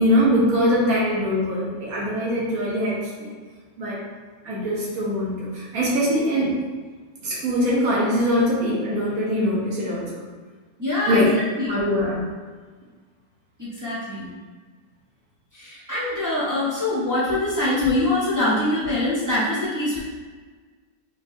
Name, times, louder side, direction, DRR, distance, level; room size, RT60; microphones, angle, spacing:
voice 1, 0.0-3.3 3.8-4.0 4.4-6.6 7.2-10.3 11.1-11.4 11.7-12.3, equal, 55° right, -5 dB, 1.4 m, -22 dB
voice 2, 10.8-11.8 13.6-14.3 15.5-20.0, left 2 dB, 30° right, -9 dB, 0.3 m, -24 dB
5.1 x 2.7 x 2.6 m, 1.4 s
omnidirectional pair, 1.9 m